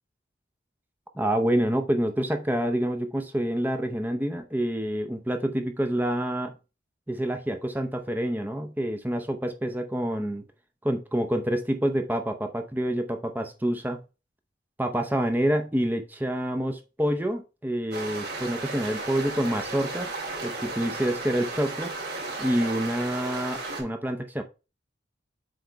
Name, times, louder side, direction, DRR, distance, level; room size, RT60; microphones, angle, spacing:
voice 1, 1.2-6.5 7.1-10.4 10.8-14.0 14.8-20.1 20.4-21.9 22.4-24.4, right 1 dB, 10° right, 6 dB, 0.6 m, -27 dB
sound 1, 17.9-23.8, right 3 dB, 55° right, 3.1 m, -34 dB
7.8 x 3.3 x 4.5 m, 0.30 s
head